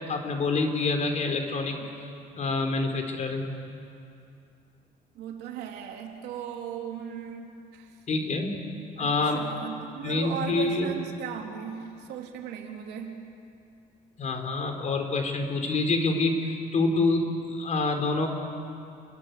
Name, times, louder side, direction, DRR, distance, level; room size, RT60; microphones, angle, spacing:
voice 1, 0.1-1.8 2.3-3.4 8.1-8.6 9.0-9.4 10.0-10.9 14.2-18.3, left 3 dB, 45° left, 4 dB, 4.4 m, -26 dB
voice 2, 5.1-8.0 9.0-13.2, right 8 dB, 80° right, 2 dB, 3.3 m, -37 dB
29.0 x 22.5 x 8.3 m, 2.5 s
cardioid pair, 110°, 17 cm